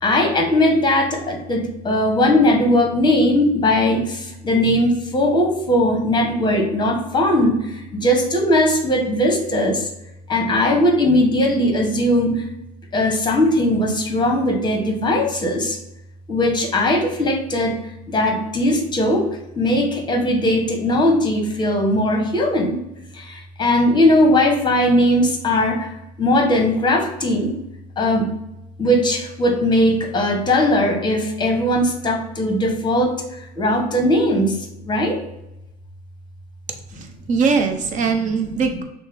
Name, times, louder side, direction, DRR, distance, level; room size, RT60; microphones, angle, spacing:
voice 1, 0.0-9.9 10.3-12.5 12.9-15.8 16.3-17.8 18.1-19.3 19.6-22.8 23.1-25.9 26.2-27.6 28.0-28.3 28.8-34.6 34.8-35.2, left 1 dB, 25° left, 3 dB, 1.1 m, -19 dB
voice 2, 37.0-38.8, right 5 dB, 40° right, 5 dB, 0.8 m, -21 dB
6.3 x 2.1 x 3.4 m, 0.89 s
supercardioid pair, 100°, 19 cm